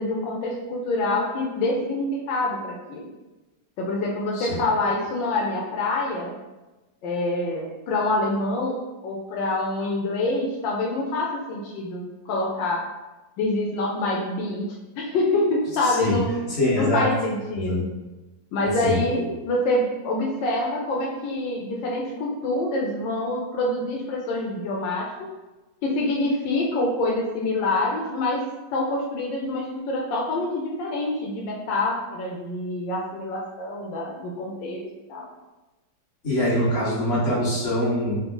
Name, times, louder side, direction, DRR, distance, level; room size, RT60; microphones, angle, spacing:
voice 1, 0.0-3.1 3.8-6.3 7.0-8.8 9.0-12.9 13.4-16.3 16.7-17.8 18.5-25.3 25.8-28.4 28.7-34.8 35.1-35.3, left 2 dB, 85° left, -2 dB, 1.3 m, -26 dB
voice 2, 15.8-16.2 16.5-17.1 17.5-17.9 18.8-19.0 36.2-38.2, left 1 dB, 35° left, -9 dB, 1.5 m, -24 dB
4.0 x 2.2 x 3.7 m, 1.1 s
omnidirectional pair, 2.0 m